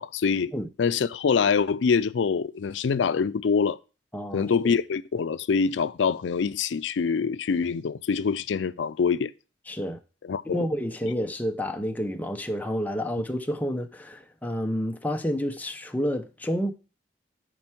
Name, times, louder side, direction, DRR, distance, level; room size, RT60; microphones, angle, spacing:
voice 1, 0.0-0.5 0.8-3.8 4.3-9.3 10.3-10.7, left 5 dB, 80° left, 0.4 m, -25 dB
voice 2, 4.1-4.7 9.7-10.0 10.5-16.7, equal, 10° left, 0.7 m, -29 dB
7.8 x 4.5 x 5.9 m
head